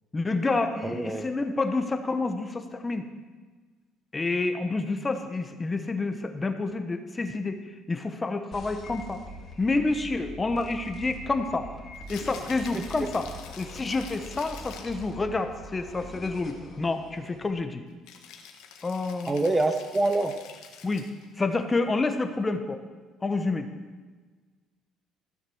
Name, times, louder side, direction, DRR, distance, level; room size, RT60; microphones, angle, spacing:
voice 1, 0.1-3.1 4.1-9.2 9.6-11.7 12.1-13.3 13.6-17.8 18.8-19.3 20.8-21.1 21.4-22.8 23.2-23.7, left 3 dB, 20° left, 7 dB, 1.0 m, -28 dB
voice 2, 0.8-1.2 12.7-12.8 19.3-20.3, right 2 dB, 15° right, 8 dB, 0.8 m, -25 dB
sound 1, 8.5-17.5, equal, 40° left, 2.2 m, -44 dB
Rattle (instrument), 11.9-15.1 18.1-21.3, left 7 dB, 85° left, 1.4 m, -46 dB
15.0 x 7.5 x 6.3 m, 1.4 s
cardioid pair, 115°, 0 cm